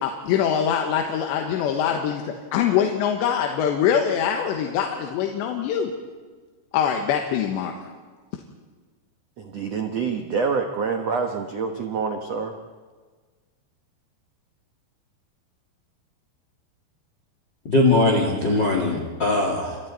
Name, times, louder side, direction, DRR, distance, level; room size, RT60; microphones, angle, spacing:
voice 1, 0.0-2.2 2.5-5.9 6.7-7.7, left 8 dB, 85° left, 3 dB, 3.6 m, -23 dB
voice 2, 9.4-12.5, right 5 dB, 75° right, 4 dB, 1.4 m, -26 dB
voice 3, 17.7-19.8, left 2 dB, 35° left, 0 dB, 2.2 m, -20 dB
29.5 x 27.5 x 4.2 m, 1.5 s
omnidirectional pair, 5.0 m